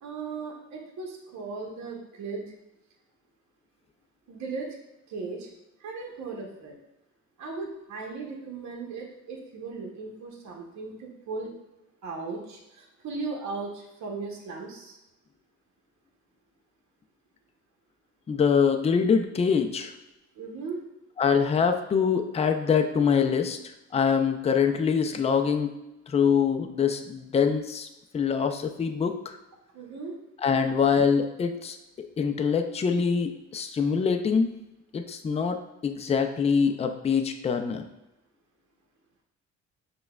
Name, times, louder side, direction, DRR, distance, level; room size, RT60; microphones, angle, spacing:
voice 1, 0.0-2.4 4.3-4.7 5.1-5.5 5.8-6.8 7.4-11.5 12.0-15.0 20.3-20.8 29.7-30.1, right 4 dB, 65° right, -1 dB, 0.9 m, -37 dB
voice 2, 18.3-19.9 21.2-23.6 23.9-25.8 26.1-27.9 28.1-29.4 30.4-31.8 32.2-34.5 34.9-35.6 35.8-37.8, left 6 dB, 20° left, 6 dB, 0.3 m, -24 dB
6.2 x 2.2 x 2.3 m, 0.97 s
cardioid pair, 90°, 30 cm